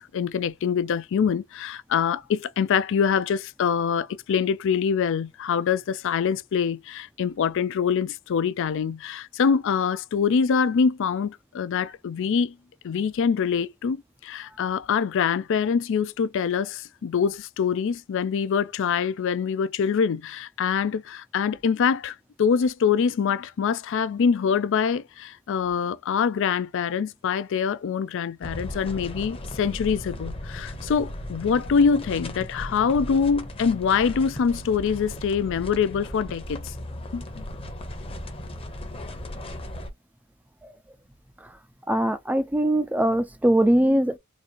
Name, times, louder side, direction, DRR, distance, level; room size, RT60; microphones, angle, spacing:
voice 1, 0.0-12.5 12.8-36.7 37.1-37.5, left 6 dB, 60° left, 0.4 m, -24 dB
sound 1, 28.4-39.9, left 1 dB, 25° left, 0.9 m, -37 dB
voice 2, 41.9-44.2, right 1 dB, 5° right, 0.4 m, -21 dB
3.9 x 2.5 x 2.9 m
head